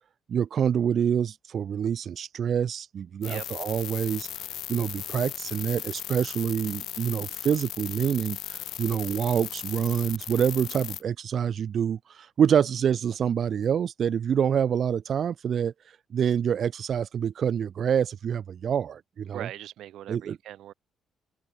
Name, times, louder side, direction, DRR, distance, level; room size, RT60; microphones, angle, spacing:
voice 1, 0.3-19.5 20.1-20.4, right 8 dB, 55° right, 0.7 m, -27 dB
sound 1, 3.2-11.0, left 13 dB, 80° left, 0.6 m, -37 dB
voice 2, 19.3-20.7, right 12 dB, 80° right, 1.5 m, -40 dB
open air
cardioid pair, 90°, 0 cm